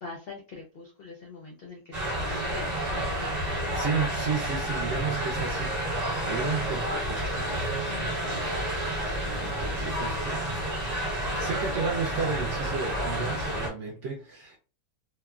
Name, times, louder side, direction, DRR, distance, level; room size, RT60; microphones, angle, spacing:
voice 1, 0.0-3.6 7.9-8.7, left 3 dB, 70° left, 0.5 m, -43 dB
sound 1, 1.9-13.7, right 1 dB, 30° right, 1.0 m, -30 dB
voice 2, 3.7-5.8 6.3-7.5 9.3-10.4 10.7-14.6, right 5 dB, 65° right, 0.8 m, -33 dB
2.9 x 2.2 x 2.3 m
omnidirectional pair, 1.7 m